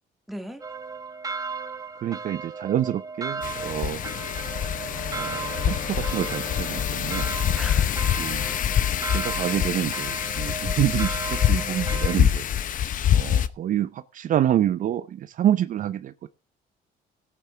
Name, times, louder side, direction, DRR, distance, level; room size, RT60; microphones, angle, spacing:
voice 1, 0.3-0.6 7.5-8.0 8.4-8.8, equal, ahead, 1.9 m, -39 dB
sound 1, 0.6-12.2, right 4 dB, 20° right, 1.0 m, -36 dB
voice 2, 2.0-4.0 5.1-7.3 8.2-8.5 9.1-12.5 13.1-16.3, right 11 dB, 50° right, 0.6 m, -27 dB
Wind, 3.4-13.5, left 9 dB, 50° left, 0.8 m, -25 dB
Wind instrument woodwind instrument, 4.1-8.2, left 4 dB, 35° left, 2.6 m, -40 dB
18.0 x 8.5 x 3.4 m
cardioid pair, 110°, 17 cm